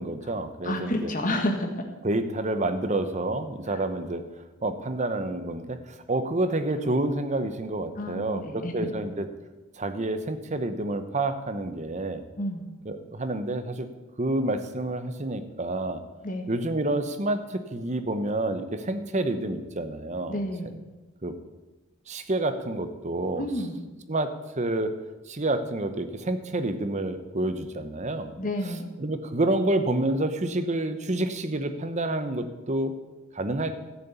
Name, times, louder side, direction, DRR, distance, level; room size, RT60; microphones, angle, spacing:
voice 1, 0.0-1.1 2.0-4.2 4.6-5.8 6.1-9.3 9.8-12.2 12.8-13.9 14.2-16.0 16.5-20.4 21.2-21.3 22.1-23.5 24.1-24.9 25.3-28.3 28.6-28.7 29.0-32.9 33.3-33.7, right 2 dB, 35° right, 9 dB, 0.9 m, -28 dB
voice 2, 0.6-1.7 3.7-3.8 8.0-8.8 12.4-12.7 16.2-16.5 20.3-20.7 23.4-23.8 28.4-28.9, left 1 dB, 40° left, 4 dB, 1.6 m, -30 dB
12.5 x 7.0 x 8.1 m, 1.2 s
head